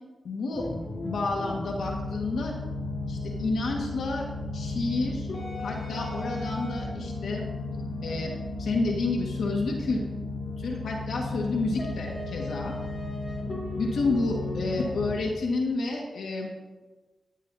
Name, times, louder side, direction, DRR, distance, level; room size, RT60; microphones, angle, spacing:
voice 1, 0.2-0.7 1.0-2.5 3.1-4.3 4.5-5.3 5.6-7.4 8.0-8.3 8.6-10.0 10.6-12.7 13.8-16.5, left 3 dB, 85° left, 0 dB, 1.7 m, -30 dB
sound 1, 0.5-15.2, left 2 dB, 60° left, 3.7 m, -34 dB
16.5 x 11.0 x 2.8 m, 1.2 s
cardioid pair, 75°, 0 cm